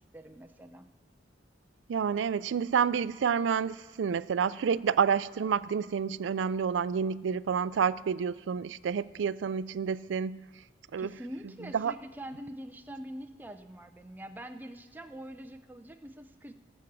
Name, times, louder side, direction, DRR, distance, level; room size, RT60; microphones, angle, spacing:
voice 1, 0.1-0.9 11.0-16.5, right 1 dB, 10° right, 6 dB, 0.5 m, -44 dB
voice 2, 1.9-10.5 10.9-11.1 11.7-11.9, right 7 dB, 75° right, 18 dB, 0.4 m, -29 dB
18.5 x 7.3 x 6.1 m, 1.2 s
head